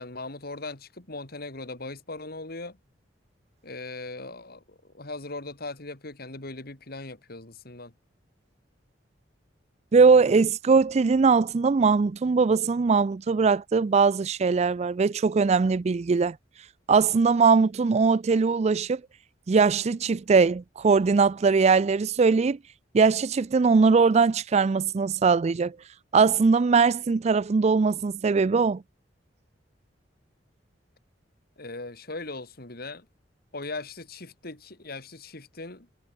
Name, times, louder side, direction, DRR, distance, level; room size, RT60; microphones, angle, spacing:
voice 1, 0.0-2.8 3.6-7.9 31.6-33.1 33.5-35.9, left 2 dB, 60° left, 3.1 m, -39 dB
voice 2, 9.9-16.4 16.9-19.0 19.5-22.6 22.9-25.8 26.1-28.8, right 5 dB, 35° right, 0.4 m, -21 dB
head